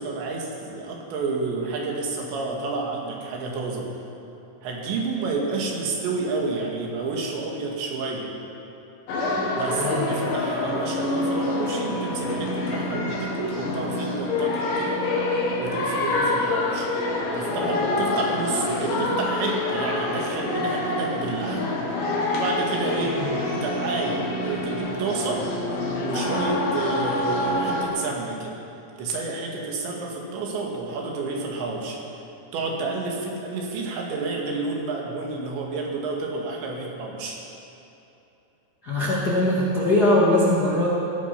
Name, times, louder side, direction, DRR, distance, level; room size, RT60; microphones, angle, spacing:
voice 1, 0.0-4.0 4.6-8.3 9.5-15.0 15.6-16.9 17.3-21.7 22.3-25.5 26.0-28.6 29.0-32.2 32.5-37.4, right 3 dB, 70° right, -1 dB, 3.9 m, -30 dB
sound 1, 9.1-27.8, left 2 dB, 70° left, 3.9 m, -26 dB
voice 2, 38.8-40.9, left 1 dB, 85° left, -7 dB, 0.8 m, -21 dB
17.0 x 12.0 x 5.8 m, 2.8 s
omnidirectional pair, 5.6 m